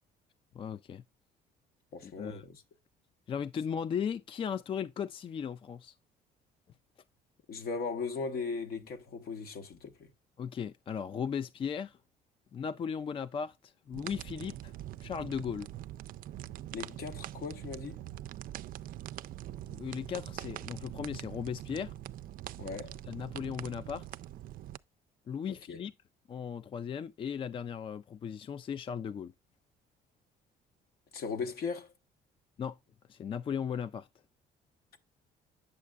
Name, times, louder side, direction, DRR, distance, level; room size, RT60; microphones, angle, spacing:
voice 1, 0.5-1.0 2.0-2.4 3.3-5.9 10.4-12.0 12.5-14.7 15.0-15.7 19.7-21.9 23.1-24.1 25.3-25.9 26.3-29.3 32.6-32.8 33.1-34.1, left 7 dB, 30° left, 0.3 m, -37 dB
voice 2, 1.9-2.5 7.5-10.1 16.7-18.0 22.6-22.9 25.7-25.8 31.1-31.9, left 4 dB, 65° left, 1.3 m, -38 dB
sound 1, 13.9-24.8, right 13 dB, 55° right, 0.4 m, -43 dB
8.6 x 6.5 x 2.3 m
cardioid pair, 110°, 17 cm